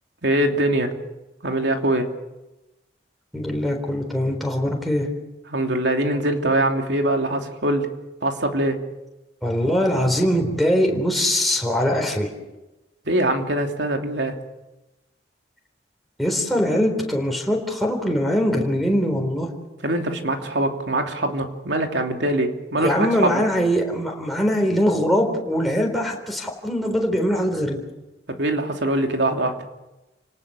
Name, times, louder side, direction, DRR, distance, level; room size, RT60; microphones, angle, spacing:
voice 1, 0.2-0.9 1.4-2.1 5.5-7.9 8.2-8.8 13.1-14.3 19.8-23.4 28.4-29.5, right 1 dB, 80° right, 3 dB, 2.9 m, -23 dB
voice 2, 3.3-5.1 9.4-12.3 16.2-19.5 22.8-27.8, equal, ahead, 0 dB, 4.0 m, -22 dB
29.5 x 18.5 x 7.0 m, 1.0 s
head